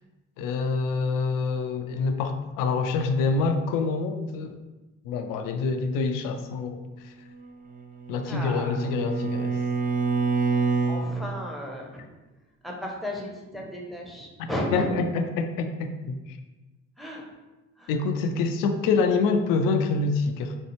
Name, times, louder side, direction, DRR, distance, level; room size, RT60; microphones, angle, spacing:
voice 1, 0.4-4.6 5.0-6.8 7.0-7.1 8.1-9.6 14.7-16.4 17.9-20.6, left 4 dB, 60° left, 7 dB, 0.5 m, -26 dB
Bowed string instrument, 7.7-11.1, right 4 dB, 25° right, 0.3 m, -27 dB
voice 2, 8.2-8.7 10.9-12.0 12.6-14.9 17.0-17.3 17.8-17.9, left 1 dB, ahead, -2 dB, 0.8 m, -34 dB
4.3 x 2.3 x 3.1 m, 1.1 s
hypercardioid pair, 50°, 39 cm